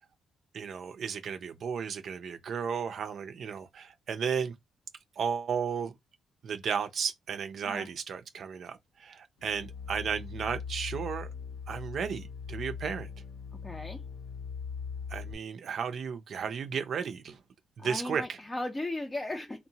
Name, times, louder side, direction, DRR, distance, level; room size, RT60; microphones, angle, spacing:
voice 1, 0.5-4.5 5.2-5.9 6.4-11.3 11.7-13.1 15.1-17.4 17.8-18.4, right 6 dB, 60° right, 0.5 m, -34 dB
sound 1, 9.4-15.3, left 6 dB, 85° left, 0.6 m, -40 dB
voice 2, 13.6-14.0 17.8-19.7, left 2 dB, 20° left, 0.5 m, -36 dB
2.8 x 2.1 x 2.7 m
cardioid pair, 90°, 0 cm